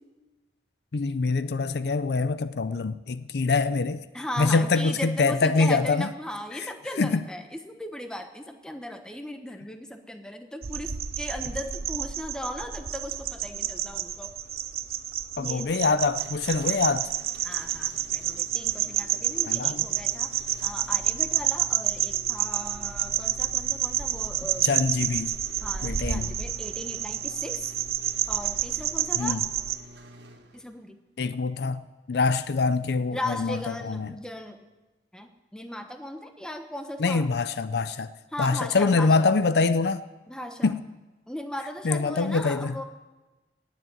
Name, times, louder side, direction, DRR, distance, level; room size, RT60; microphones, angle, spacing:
voice 1, 0.9-4.0 4.4-6.1 6.5-6.7 7.0-7.2 15.4-17.1 19.5-19.9 24.6-25.4 25.8-26.3 29.2-29.4 31.2-34.1 37.0-38.1 38.4-40.0 40.6-40.8 41.8-42.8, left 4 dB, 65° left, 0.5 m, -25 dB
voice 2, 4.1-14.3 15.4-15.7 17.4-24.7 25.6-27.7 28.3-29.4 30.5-31.0 33.1-34.7 35.1-37.3 38.3-39.3 40.3-40.7 41.3-42.8, left 1 dB, 5° left, 1.0 m, -37 dB
sound 1, 10.6-29.8, right 10 dB, 55° right, 0.6 m, -29 dB
sound 2, 16.1-30.8, right 1 dB, 70° right, 1.5 m, -49 dB
18.5 x 7.3 x 9.2 m
head